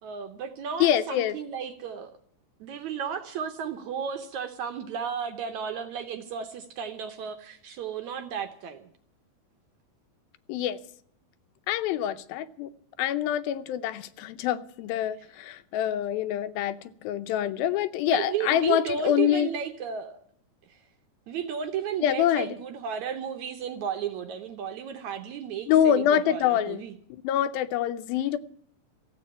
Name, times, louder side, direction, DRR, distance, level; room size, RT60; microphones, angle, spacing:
voice 1, 0.0-2.1 2.6-8.9 18.1-20.2 20.7-20.8 21.3-26.9, right 7 dB, 70° right, 1.8 m, -34 dB
voice 2, 0.8-1.4 10.5-10.8 11.7-12.7 13.0-19.5 22.0-22.5 25.7-26.8 27.2-28.4, left 10 dB, 85° left, 2.6 m, -25 dB
14.5 x 8.3 x 9.5 m
omnidirectional pair, 4.1 m